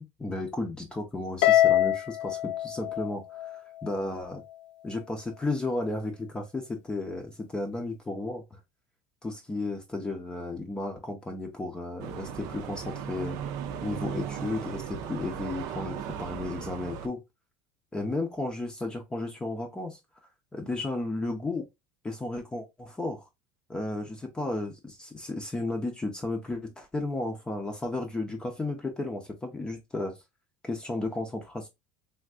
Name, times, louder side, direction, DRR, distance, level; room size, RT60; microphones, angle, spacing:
voice 1, 0.2-4.4 4.8-8.6 9.2-13.4 13.8-17.2 17.9-20.0 20.5-21.7 22.0-23.2 23.7-30.2 30.6-31.7, left 2 dB, 15° left, 0.6 m, -33 dB
Harp, 1.4-3.9, left 13 dB, 90° left, 0.4 m, -24 dB
sound 1, 12.0-17.1, right 8 dB, 60° right, 0.5 m, -37 dB
3.5 x 2.5 x 2.4 m
supercardioid pair, 130°, 6 cm